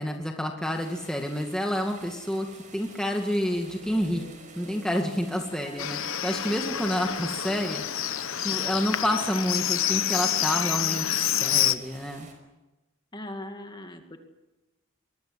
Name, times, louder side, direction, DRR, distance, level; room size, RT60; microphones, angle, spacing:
voice 1, 0.0-2.5 2.7-4.2 4.6-12.3, equal, 5° left, 2 dB, 2.1 m, -29 dB
sound 1, 0.7-12.3, right 4 dB, 40° right, 5.6 m, -50 dB
sound 2, 3.3-10.7, right 2 dB, 70° right, 7.2 m, -51 dB
voice 2, 5.5-6.0 13.1-14.2, left 1 dB, 20° left, 5 dB, 2.4 m, -40 dB
Livestock farm animals working animals, 5.8-11.8, left 11 dB, 80° left, 1.1 m, -28 dB
24.0 x 21.0 x 9.8 m, 1.1 s
head